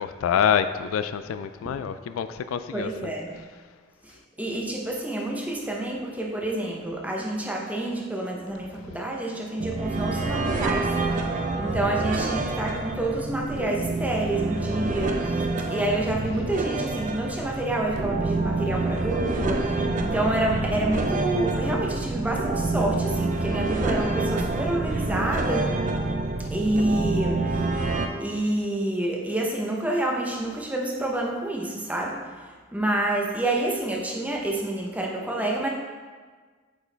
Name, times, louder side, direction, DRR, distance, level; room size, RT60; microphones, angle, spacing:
voice 1, 0.0-3.1, left 8 dB, 80° left, 12 dB, 0.3 m, -26 dB
voice 2, 2.7-3.3 4.0-25.8 26.5-27.6 28.2-35.7, right 1 dB, 5° right, -1 dB, 0.7 m, -28 dB
sound 1, 9.6-28.1, right 3 dB, 40° right, 0.5 m, -27 dB
8.3 x 4.5 x 3.4 m, 1.5 s
head